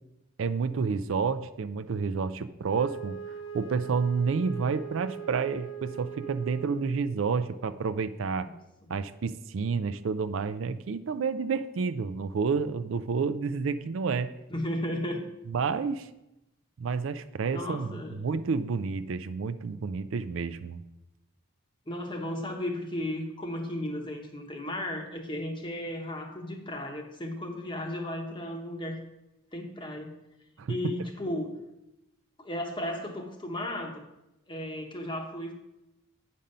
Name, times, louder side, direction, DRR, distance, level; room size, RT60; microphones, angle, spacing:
voice 1, 0.4-3.2 3.5-8.5 8.9-14.3 15.5-16.1 16.8-20.8 30.6-31.1, right 5 dB, 65° right, 12 dB, 0.4 m, -30 dB
Wind instrument woodwind instrument, 2.6-7.3, right 8 dB, 65° left, 0.8 m, -41 dB
voice 2, 14.5-15.3 17.5-18.2 21.9-29.0 29.5-30.1 30.7-31.6 32.4-34.0 34.5-35.5, left 1 dB, 20° left, 3 dB, 0.9 m, -34 dB
8.8 x 5.3 x 5.4 m, 0.92 s
head